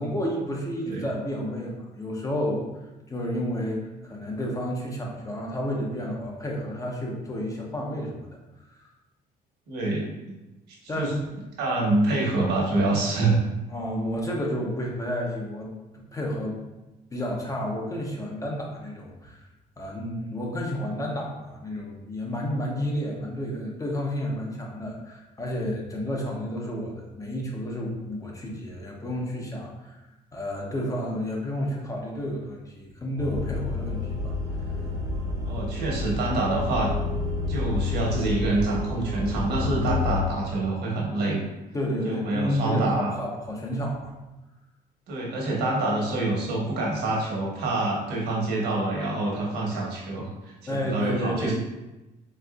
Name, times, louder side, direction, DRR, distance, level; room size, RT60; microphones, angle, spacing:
voice 1, 0.0-2.6 3.1-8.3 8.6-8.7 10.9-11.2 13.7-16.6 17.1-19.5 19.8-30.0 30.3-34.3 41.7-44.1 50.7-51.5, equal, 20° left, -1 dB, 0.7 m, -31 dB
voice 2, 9.7-10.3 10.9-11.1 11.6-13.4 35.4-36.9 37.5-41.4 42.0-43.1 45.1-51.5, right 2 dB, 80° right, -3 dB, 1.2 m, -26 dB
sound 1, 33.2-40.2, left 3 dB, 20° right, 0.7 m, -29 dB
4.2 x 2.6 x 2.3 m, 1.0 s
cardioid pair, 110°, 17 cm